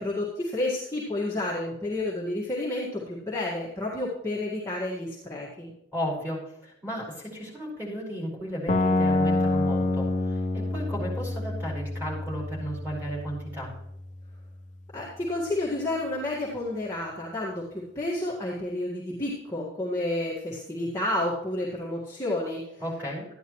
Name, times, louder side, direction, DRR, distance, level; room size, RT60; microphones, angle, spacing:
voice 1, 0.0-5.7 14.9-22.6, left 1 dB, 15° left, -7 dB, 1.9 m, -30 dB
voice 2, 5.9-13.7 22.8-23.3, equal, 10° right, -5 dB, 5.1 m, -34 dB
sound 1, 8.7-14.7, left 2 dB, 40° left, 0.9 m, -28 dB
13.5 x 11.0 x 3.1 m, 0.82 s
head